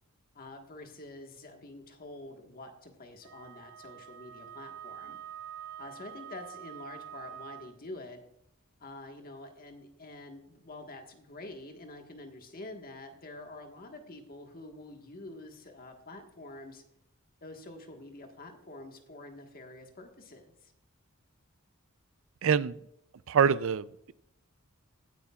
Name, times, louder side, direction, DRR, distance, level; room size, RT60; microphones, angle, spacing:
voice 1, 0.3-5.2 5.8-8.2 8.8-16.8 17.4-20.7, left 2 dB, 45° left, 4 dB, 1.5 m, -47 dB
Wind instrument woodwind instrument, 3.2-7.8, right 10 dB, 80° right, 1.6 m, -46 dB
voice 2, 22.4-22.8 23.3-24.1, right 7 dB, 65° right, 17 dB, 0.4 m, -25 dB
16.0 x 10.0 x 2.4 m, 0.76 s
head